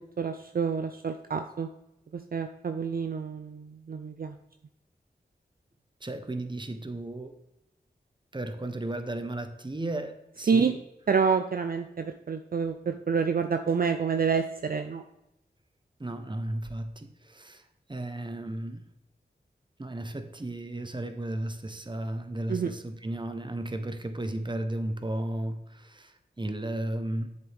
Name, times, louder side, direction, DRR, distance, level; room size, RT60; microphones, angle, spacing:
voice 1, 0.2-1.7 2.1-4.4 10.5-10.7 11.1-15.0 22.5-22.7, right 6 dB, 55° right, 7 dB, 0.5 m, -28 dB
voice 2, 6.0-7.3 8.3-10.8 16.0-17.6 17.9-18.8 19.8-27.3, right 1 dB, 25° right, 7 dB, 1.0 m, -34 dB
7.8 x 6.8 x 3.5 m, 0.88 s
cardioid pair, 45°, 18 cm